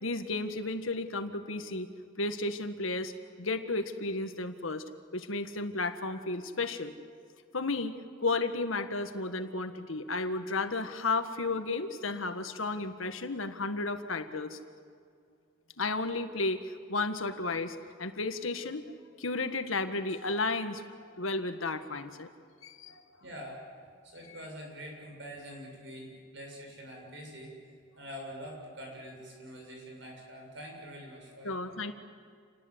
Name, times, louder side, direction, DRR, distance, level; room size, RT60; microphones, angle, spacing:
voice 1, 0.0-1.9 2.2-3.1 3.4-4.8 5.1-6.9 7.5-14.6 15.8-18.8 19.2-22.3 22.6-23.0 31.4-31.9, left 3 dB, 85° left, 8 dB, 1.7 m, -33 dB
voice 2, 23.2-23.6 24.0-27.5 28.0-31.8, equal, 65° right, 0 dB, 7.2 m, -45 dB
29.0 x 19.5 x 8.1 m, 2.2 s
head